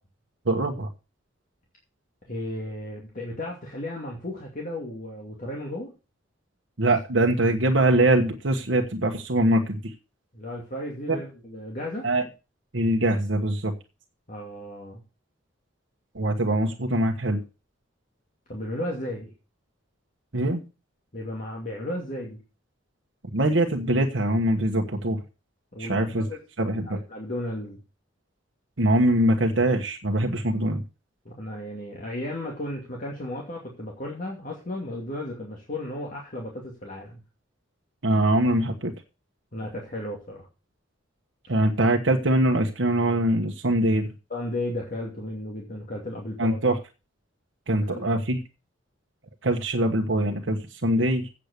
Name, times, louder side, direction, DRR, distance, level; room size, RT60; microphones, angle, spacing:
voice 1, 0.4-0.9 6.8-9.9 11.1-11.2 12.0-12.2 12.7-13.7 16.1-17.4 20.3-20.6 23.3-25.2 25.8-26.2 26.6-27.0 28.8-30.8 38.0-38.9 41.5-44.1 46.4-46.8 47.7-48.4 49.4-51.3, right 1 dB, 70° right, 2 dB, 1.3 m, -23 dB
voice 2, 2.3-5.9 10.3-12.1 14.3-15.0 18.5-19.3 21.1-22.4 25.7-26.4 26.8-27.8 31.2-37.2 39.5-40.5 44.3-46.6 47.9-48.0, left 1 dB, 45° left, -2 dB, 2.4 m, -34 dB
8.3 x 7.5 x 6.7 m, 0.31 s
head